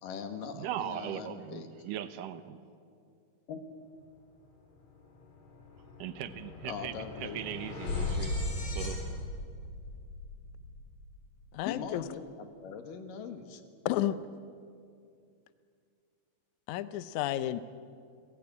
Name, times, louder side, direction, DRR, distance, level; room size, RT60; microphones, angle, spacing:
voice 1, 0.0-1.7 3.5-3.6 6.6-7.6 11.7-13.6, left 6 dB, 90° left, 7 dB, 3.4 m, -41 dB
voice 2, 0.5-2.6 6.0-8.5 8.8-9.0, right 11 dB, 80° right, 11 dB, 2.6 m, -39 dB
sound 1, 4.7-4.8 5.1-11.4, left 2 dB, 60° left, 5.2 m, -38 dB
voice 3, 11.5-12.0 13.9-14.2 16.7-17.6, left 13 dB, 75° left, 13 dB, 2.1 m, -31 dB
30.0 x 16.5 x 9.8 m, 2.4 s
omnidirectional pair, 3.7 m